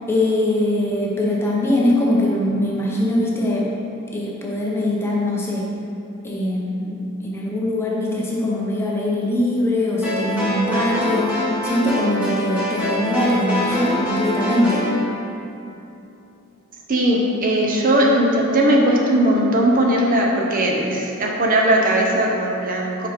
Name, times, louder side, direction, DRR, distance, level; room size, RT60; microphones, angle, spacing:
voice 1, 0.1-3.7 4.1-5.7 6.2-14.9, left 1 dB, 10° left, -4 dB, 0.7 m, -22 dB
sound 1, 10.0-15.0, equal, 5° right, 1.3 m, -24 dB
voice 2, 16.9-23.1, right 1 dB, 40° right, -1 dB, 0.7 m, -18 dB
5.3 x 5.2 x 5.0 m, 2.9 s
head